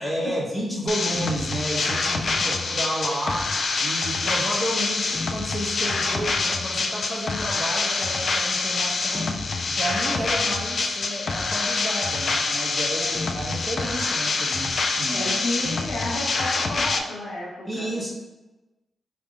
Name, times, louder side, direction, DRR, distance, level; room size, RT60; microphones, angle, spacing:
voice 1, 0.0-15.3 17.7-18.1, right 1 dB, 10° right, -4 dB, 1.5 m, -31 dB
sound 1, 0.9-17.0, left 3 dB, 55° left, 0.4 m, -26 dB
voice 2, 15.1-17.9, left 1 dB, 85° left, -4 dB, 1.1 m, -31 dB
4.8 x 3.5 x 2.5 m, 1.0 s
cardioid pair, 75°, 0 cm